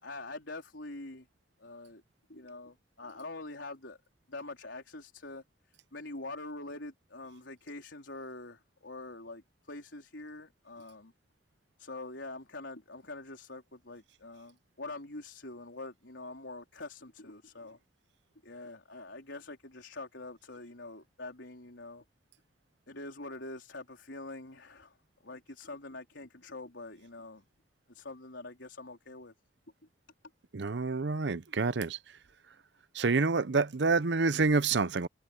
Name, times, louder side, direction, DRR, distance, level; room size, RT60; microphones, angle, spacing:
voice 1, 0.0-1.3 1.6-2.0 2.3-4.0 4.3-5.4 5.9-9.4 9.7-11.1 11.8-17.8 18.4-22.0 22.9-24.9 25.2-27.4 27.9-29.3, left 2 dB, 80° left, 4.1 m, -45 dB
voice 2, 30.5-32.0 32.9-35.1, right 4 dB, 70° right, 0.7 m, -28 dB
head